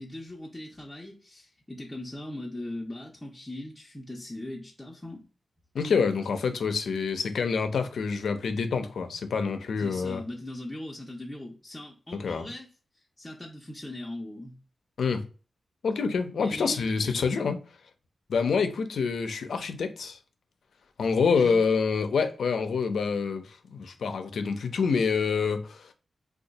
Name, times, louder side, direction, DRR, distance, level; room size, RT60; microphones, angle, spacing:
voice 1, 0.0-5.2 9.8-14.6 16.4-17.3 21.3-21.7, left 1 dB, 15° left, 0.6 m, -40 dB
voice 2, 5.7-10.2 12.2-12.5 15.0-15.2 15.8-17.6 18.3-20.2 21.0-25.9, left 5 dB, 90° left, 0.5 m, -27 dB
2.7 x 2.3 x 3.9 m
wide cardioid pair, 100°, 0 cm